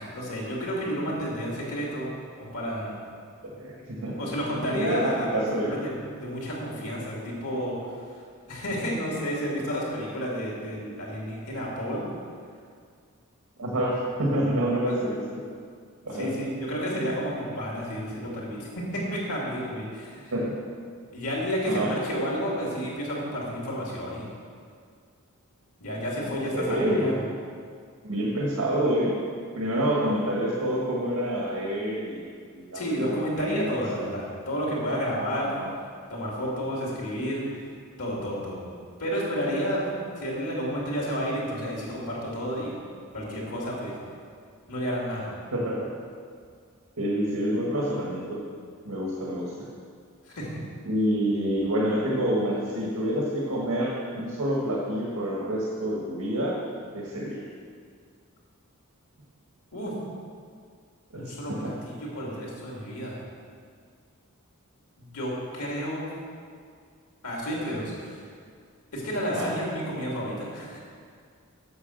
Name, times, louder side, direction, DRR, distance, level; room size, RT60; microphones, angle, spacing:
voice 1, 0.0-2.1 2.4-3.0 4.2-8.2 8.5-12.1 14.8-14.9 16.1-20.3 21.1-24.3 25.8-27.2 32.7-35.6 36.1-37.4 38.0-38.6 39.0-39.9 40.2-42.7 43.1-44.0 44.7-45.3 50.2-50.5 59.7-60.0 61.1-63.2 65.0-66.1 67.2-68.2 68.9-70.8, equal, 90° left, -4 dB, 2.8 m, -31 dB
voice 2, 3.4-4.3 4.7-5.8 13.6-15.4 16.0-16.3 20.3-20.6 21.7-21.9 26.5-27.3 28.0-29.1 29.5-32.2 32.5-33.1 33.4-33.7 33.9-34.0 35.4-35.7 45.5-45.9 47.0-48.4 48.8-49.7 50.8-56.6 56.9-57.4 61.1-61.2 61.5-61.8 69.3-69.5, equal, 80° right, -4 dB, 1.6 m, -27 dB
8.0 x 6.8 x 6.7 m, 2.1 s
head